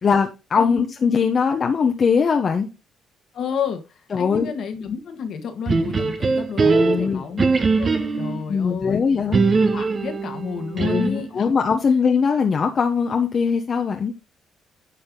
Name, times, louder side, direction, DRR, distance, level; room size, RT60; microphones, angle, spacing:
voice 1, 0.0-2.7 4.1-4.5 6.6-7.2 8.5-9.4 10.7-14.1, left 6 dB, 45° left, 1.1 m, -21 dB
voice 2, 0.6-0.9 3.3-7.4 7.8-9.0 9.5-11.5, left 6 dB, 65° left, 1.9 m, -31 dB
sound 1, 5.7-8.4 9.3-11.3, right 4 dB, 40° right, 1.2 m, -21 dB
10.0 x 5.6 x 3.9 m
cardioid pair, 90°, 0 cm